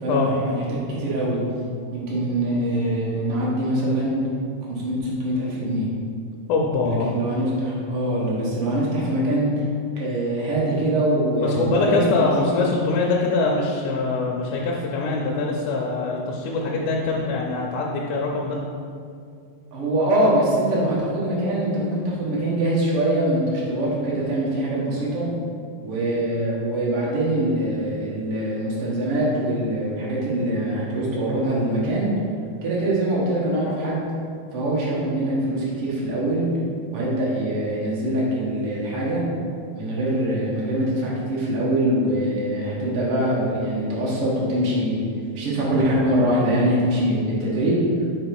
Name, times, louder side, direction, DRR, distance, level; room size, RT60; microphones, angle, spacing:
voice 1, 0.0-0.6 0.9-1.4 1.9-4.1 4.7-5.9 6.8-9.5 9.9-12.3 19.7-25.3 25.8-32.1 32.6-34.0 34.5-36.5 36.9-39.2 39.7-45.0 45.3-47.8, right 1 dB, 60° right, -6 dB, 1.5 m, -23 dB
voice 2, 6.5-7.1 11.4-18.6, left 3 dB, 90° left, -1 dB, 2.7 m, -23 dB
5.3 x 5.0 x 4.7 m, 2.3 s
omnidirectional pair, 4.6 m